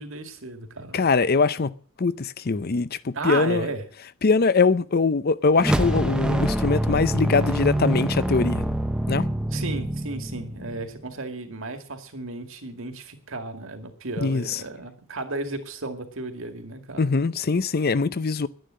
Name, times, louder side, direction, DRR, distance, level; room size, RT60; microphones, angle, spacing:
voice 1, 0.0-1.0 3.1-3.8 9.5-17.1, right 3 dB, 65° right, 2.2 m, -34 dB
voice 2, 0.9-1.7 2.0-3.7 4.2-8.7 9.1-9.3 14.2-14.6 17.0-18.5, left 4 dB, 45° left, 0.6 m, -22 dB
sound 1, 5.6-11.0, right 1 dB, 5° right, 0.8 m, -25 dB
11.0 x 10.5 x 7.6 m
head